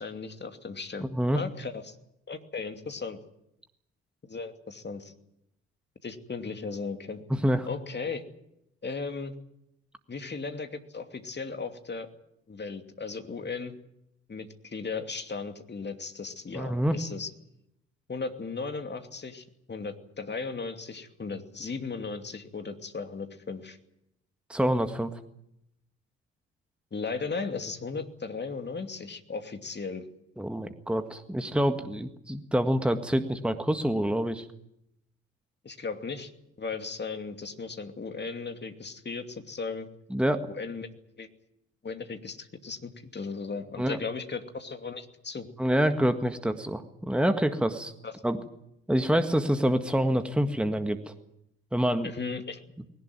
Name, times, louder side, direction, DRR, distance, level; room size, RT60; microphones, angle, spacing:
voice 1, 0.0-2.0 2.3-3.2 4.2-5.1 6.0-7.2 7.7-8.2 8.8-9.4 10.1-12.1 12.5-13.7 14.3-17.3 18.1-23.8 26.9-30.1 35.6-36.3 36.6-39.9 40.5-40.9 41.2-41.3 41.8-45.5 48.0-48.1 52.0-52.6, left 4 dB, 30° left, 6 dB, 2.7 m, -36 dB
voice 2, 1.1-1.4 7.3-7.7 16.5-16.9 24.5-25.2 30.4-34.4 40.1-40.4 43.8-44.0 45.6-47.9 48.2-48.4 48.9-51.0 51.7-52.1, equal, 5° right, 8 dB, 1.8 m, -26 dB
20.5 x 18.5 x 9.3 m, 0.79 s
figure-of-eight pair, 45°, 37 cm